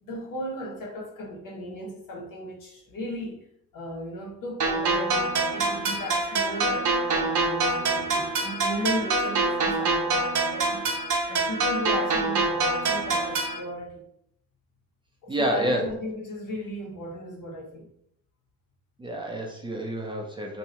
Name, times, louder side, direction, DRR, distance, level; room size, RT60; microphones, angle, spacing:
voice 1, 0.0-3.5 3.7-10.8 11.3-14.0 15.2-17.9, equal, 70° left, -2 dB, 1.4 m, -36 dB
sound 1, 4.6-13.6, right 3 dB, 60° right, 0.7 m, -25 dB
voice 2, 15.3-15.9 19.0-20.6, right 1 dB, 15° right, 0 dB, 0.5 m, -28 dB
2.8 x 2.6 x 4.3 m, 0.72 s
cardioid pair, 125°, 34 cm